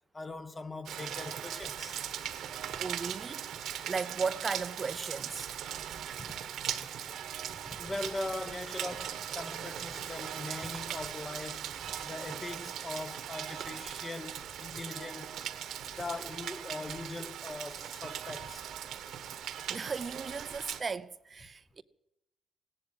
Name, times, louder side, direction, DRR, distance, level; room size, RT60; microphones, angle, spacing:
voice 1, 0.1-2.0 2.7-2.8 6.3-6.4 7.5-15.3 15.8-18.6, left 2 dB, 25° left, 1.1 m, -41 dB
Rain, 0.9-20.8, right 10 dB, 75° right, 1.3 m, -39 dB
voice 2, 2.8-5.5 19.7-21.8, right 5 dB, 35° right, 0.6 m, -36 dB
17.0 x 11.0 x 7.7 m
cardioid pair, 90°, 0 cm